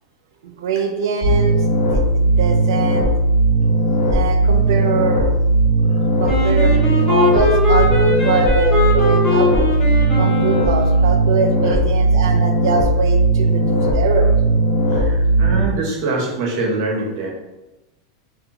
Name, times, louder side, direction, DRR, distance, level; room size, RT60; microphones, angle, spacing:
voice 1, 0.4-3.1 4.1-5.3 6.2-9.7 10.2-14.3, right 5 dB, 80° right, 5 dB, 0.4 m, -23 dB
sound 1, 1.2-15.6, right 2 dB, 55° left, 1.2 m, -17 dB
Wind instrument woodwind instrument, 6.2-11.3, left 2 dB, 20° left, 0.5 m, -21 dB
voice 2, 14.9-17.3, right 3 dB, 45° right, 0 dB, 0.6 m, -24 dB
2.7 x 2.2 x 2.7 m, 1.0 s
supercardioid pair, 170°, 2 cm